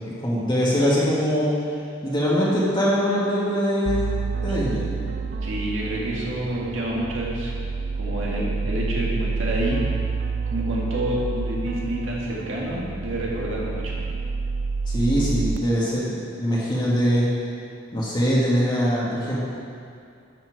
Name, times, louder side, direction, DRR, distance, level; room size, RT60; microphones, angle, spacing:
voice 1, 0.2-1.5 2.0-4.1 4.4-5.1 14.9-17.3 17.9-19.4, equal, 25° left, -7 dB, 1.7 m, -22 dB
sound 1, 3.9-15.6, right 4 dB, 55° right, 0.4 m, -28 dB
voice 2, 5.4-7.6 8.0-9.8 10.5-14.0, right 1 dB, 75° right, -4 dB, 1.8 m, -28 dB
12.5 x 7.2 x 4.7 m, 2.5 s
head